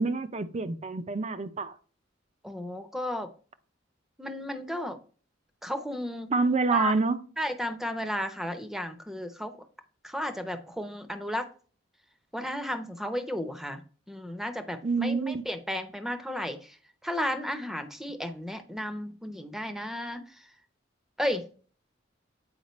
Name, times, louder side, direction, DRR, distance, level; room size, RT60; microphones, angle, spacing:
voice 1, 0.0-1.8 6.3-7.3 14.8-15.4, right 4 dB, 35° right, 0.6 m, -27 dB
voice 2, 2.4-3.3 4.2-5.0 5.6-6.3 6.7-6.9 7.4-9.5 10.0-11.5 12.3-13.8 14.1-16.8 17.0-20.2 21.2-21.5, equal, ahead, 0.7 m, -33 dB
8.1 x 4.8 x 3.1 m
head